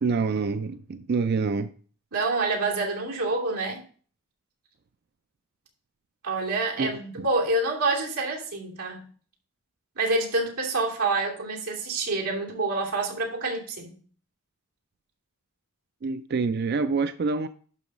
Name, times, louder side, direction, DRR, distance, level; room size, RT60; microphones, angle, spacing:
voice 1, 0.0-1.7 6.8-7.0 16.0-17.5, right 4 dB, 45° right, 11 dB, 0.4 m, -26 dB
voice 2, 2.1-3.8 6.2-9.1 10.0-13.9, right 3 dB, 90° right, -2 dB, 2.8 m, -27 dB
11.5 x 3.9 x 6.1 m, 0.43 s
head